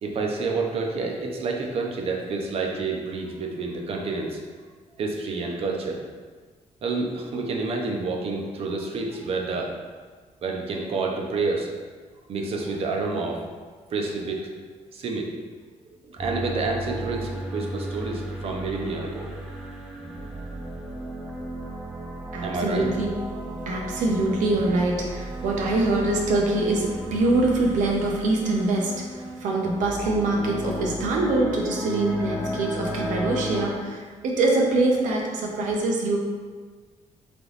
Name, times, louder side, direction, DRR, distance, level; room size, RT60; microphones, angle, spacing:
voice 1, 0.0-4.4 5.0-6.0 6.8-9.7 10.4-11.7 12.3-13.4 13.9-14.4 14.9-15.3 16.1-19.3 22.4-22.9, right 3 dB, 50° right, 1 dB, 0.6 m, -28 dB
sound 1, 16.2-33.8, right 1 dB, 5° right, 0.4 m, -34 dB
voice 2, 22.3-23.1 23.7-36.2, right 2 dB, 85° right, -1 dB, 0.7 m, -24 dB
3.4 x 3.0 x 3.9 m, 1.5 s
cardioid pair, 165°, 13 cm